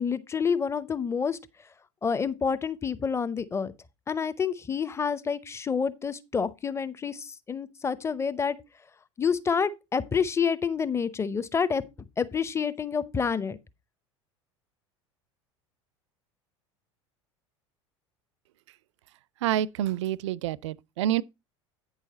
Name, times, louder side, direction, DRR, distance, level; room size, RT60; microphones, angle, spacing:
voice 1, 0.0-1.4 2.0-3.7 4.1-8.6 9.2-11.8 12.2-13.6, left 6 dB, 15° left, 0.7 m, -28 dB
voice 2, 19.4-21.2, right 12 dB, 70° right, 0.4 m, -27 dB
9.0 x 6.4 x 4.2 m
figure-of-eight pair, 75°, 16 cm